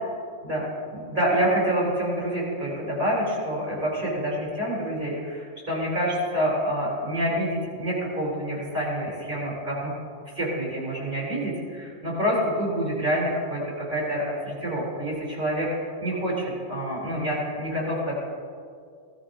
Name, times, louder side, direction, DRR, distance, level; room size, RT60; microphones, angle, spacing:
voice 1, 0.9-9.9 10.3-15.7 16.0-18.2, equal, 40° right, -5 dB, 3.8 m, -27 dB
18.0 x 13.5 x 2.7 m, 2.3 s
omnidirectional pair, 1.3 m